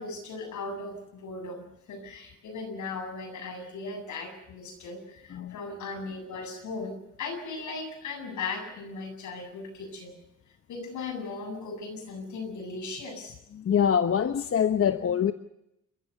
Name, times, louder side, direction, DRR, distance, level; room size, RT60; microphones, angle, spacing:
voice 1, 0.0-10.2 10.7-13.3, left 3 dB, 75° left, 5 dB, 7.8 m, -37 dB
voice 2, 13.5-15.3, left 8 dB, 45° left, 10 dB, 1.1 m, -24 dB
29.5 x 15.0 x 7.0 m, 0.82 s
cardioid pair, 90°, 30 cm